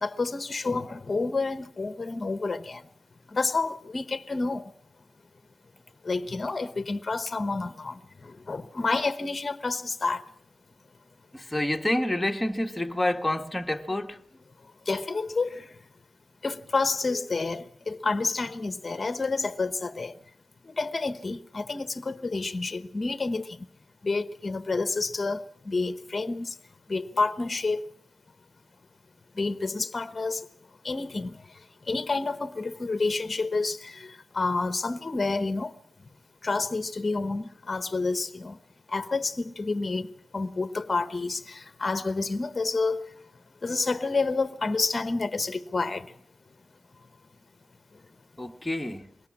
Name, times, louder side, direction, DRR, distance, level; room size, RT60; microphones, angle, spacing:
voice 1, 0.0-2.9 3.3-4.7 6.0-10.2 14.9-15.7 16.4-20.1 20.7-23.5 24.0-26.5 26.9-27.8 29.4-30.4 30.8-31.4 31.9-35.7 36.4-38.6 38.9-40.1 40.3-43.0 43.6-46.1, left 3 dB, 30° left, 1.0 m, -29 dB
voice 2, 11.3-14.2 48.4-49.1, left 1 dB, 10° left, 1.4 m, -28 dB
22.0 x 18.0 x 7.3 m
wide cardioid pair, 105°, 0 cm